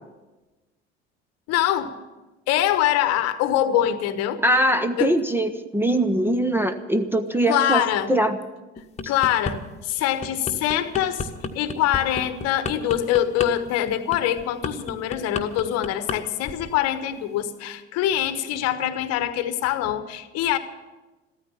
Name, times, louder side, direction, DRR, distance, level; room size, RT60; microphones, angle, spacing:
voice 1, 1.5-1.9 2.5-4.4 5.0-5.2 7.5-8.1 9.1-11.3 11.5-20.6, left 11 dB, 50° left, 12 dB, 1.1 m, -24 dB
voice 2, 4.4-7.8 8.1-8.4, right 1 dB, 5° right, 8 dB, 0.8 m, -22 dB
sound 1, 8.8-9.6 10.0-16.2 16.4-16.7, left 4 dB, 20° left, 1.3 m, -31 dB
14.5 x 13.5 x 7.1 m, 1.2 s
figure-of-eight pair, 65°, 34 cm